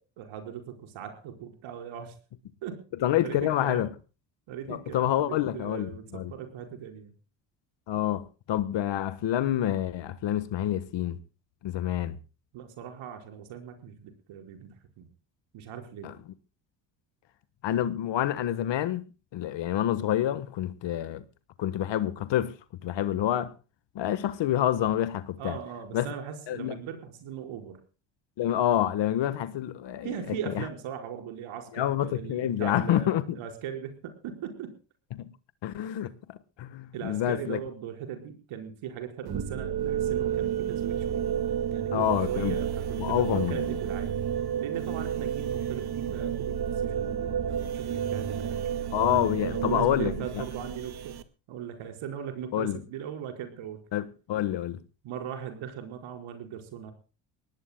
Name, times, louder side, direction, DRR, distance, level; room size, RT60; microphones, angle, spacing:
voice 1, 0.0-2.1 2.6-2.8 3.2-3.9 4.5-7.1 12.5-15.1 15.5-16.1 25.4-27.8 30.0-34.7 36.9-41.3 41.7-44.2 44.6-48.9 49.4-51.2 51.5-53.8 55.0-56.9, right 8 dB, 80° right, 5.0 m, -39 dB
voice 2, 3.0-3.9 4.7-6.3 7.9-11.2 11.6-12.2 16.0-16.1 17.6-19.0 19.3-21.2 21.6-22.5 22.8-23.5 23.9-25.6 25.9-26.1 26.5-26.8 28.4-30.7 31.7-33.4 35.1-35.3 35.6-37.6 41.9-42.6 43.0-43.8 48.9-50.4 52.5-52.8 53.9-54.8, left 12 dB, 65° left, 1.5 m, -28 dB
sound 1, 39.3-51.2, right 8 dB, 50° right, 2.0 m, -31 dB
24.0 x 19.0 x 2.2 m
cardioid pair, 100°, 47 cm